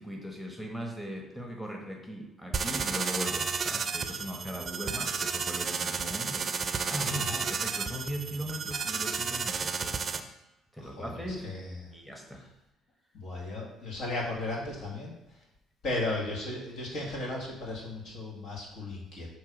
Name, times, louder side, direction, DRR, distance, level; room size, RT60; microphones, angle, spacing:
voice 1, 0.0-6.5 6.9-10.3 10.7-11.5 11.9-12.4, equal, 5° left, 1 dB, 1.0 m, -39 dB
sound 1, 2.5-10.2, right 5 dB, 45° right, 0.5 m, -32 dB
voice 2, 7.1-7.5 10.8-11.9 13.1-15.2 15.8-19.3, left 2 dB, 70° left, -2 dB, 1.9 m, -35 dB
6.2 x 3.1 x 5.2 m, 0.94 s
supercardioid pair, 70°, 0 cm